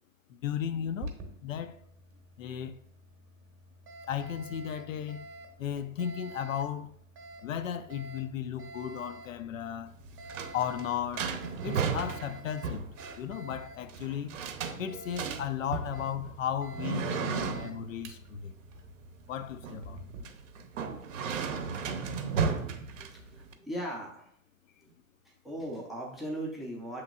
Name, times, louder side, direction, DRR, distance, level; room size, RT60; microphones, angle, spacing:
voice 1, 0.3-1.1 1.4-1.8 2.4-2.8 4.1-5.3 5.6-6.9 7.4-9.9 10.5-12.9 13.2-14.4 14.8-18.6 19.3-20.0, left 9 dB, 70° left, 0.5 m, -35 dB
Alarm, 0.8-20.2, right 2 dB, 30° right, 0.8 m, -49 dB
sound 1, 9.9-23.5, right 5 dB, 65° right, 0.7 m, -35 dB
voice 2, 23.0-24.3 24.8-24.9 25.2-27.0, right 1 dB, ahead, 0.4 m, -39 dB
7.0 x 3.1 x 2.3 m
figure-of-eight pair, 100°, 42 cm